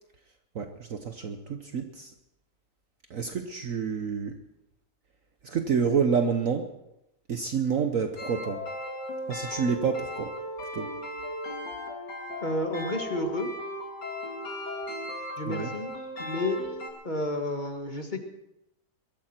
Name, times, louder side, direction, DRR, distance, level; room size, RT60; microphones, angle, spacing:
voice 1, 0.5-2.1 3.1-4.3 5.4-6.7 7.3-8.6 9.3-10.3 10.7-10.9 15.5-15.7, right 6 dB, 55° right, 6 dB, 1.2 m, -28 dB
sound 1, 8.2-16.9, left 1 dB, 90° left, 2.9 m, -37 dB
voice 2, 12.4-13.5 15.4-15.9 16.2-16.6 17.0-18.2, left 1 dB, 30° left, 4 dB, 1.8 m, -31 dB
22.0 x 13.5 x 4.4 m, 0.87 s
omnidirectional pair, 1.8 m